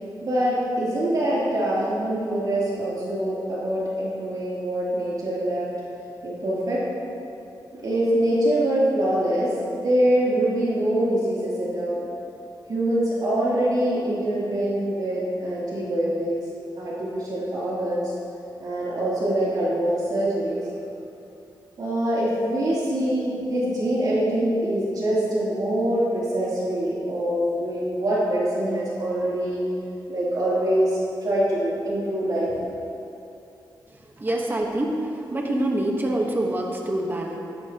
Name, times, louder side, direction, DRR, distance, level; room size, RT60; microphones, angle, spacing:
voice 1, 0.2-5.7 6.2-6.8 7.7-12.0 12.7-16.4 16.8-18.1 18.6-20.7 21.8-29.6 30.1-32.6, right 1 dB, 55° right, -8 dB, 3.2 m, -24 dB
voice 2, 34.2-37.4, right 1 dB, 25° right, 0 dB, 1.3 m, -25 dB
15.5 x 13.0 x 3.0 m, 2.7 s
wide cardioid pair, 110°, 8 cm